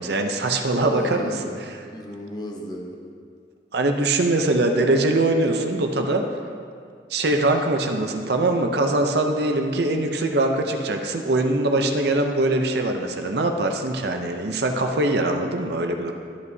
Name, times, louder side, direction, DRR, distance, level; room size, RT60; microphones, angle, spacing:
voice 1, 0.0-1.3 1.7-1.8 3.7-6.2 7.1-16.1, right 2 dB, 60° right, 5 dB, 0.6 m, -22 dB
voice 2, 0.8-3.0, equal, 20° left, 0 dB, 0.9 m, -34 dB
12.5 x 8.1 x 2.7 m, 2.2 s
head